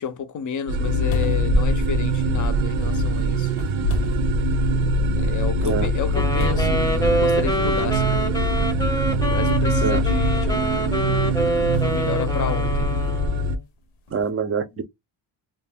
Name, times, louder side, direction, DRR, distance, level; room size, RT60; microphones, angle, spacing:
voice 1, 0.0-3.5 5.0-8.2 9.3-12.9 14.7-14.9, left 7 dB, 40° left, 0.4 m, -31 dB
sound 1, 0.7-0.8 1.1-2.8 3.5-4.9 5.3-5.4 6.4-7.5 8.5-8.6 11.7-13.4 14.1-14.2, left 1 dB, 85° left, 0.7 m, -28 dB
sound 2, 0.7-13.6, right 1 dB, 75° right, 0.6 m, -23 dB
Wind instrument woodwind instrument, 6.1-13.6, equal, 10° left, 0.7 m, -26 dB
voice 2, 14.1-14.9, right 6 dB, 30° right, 0.5 m, -25 dB
2.4 x 2.1 x 3.3 m
cardioid pair, 110°, 48 cm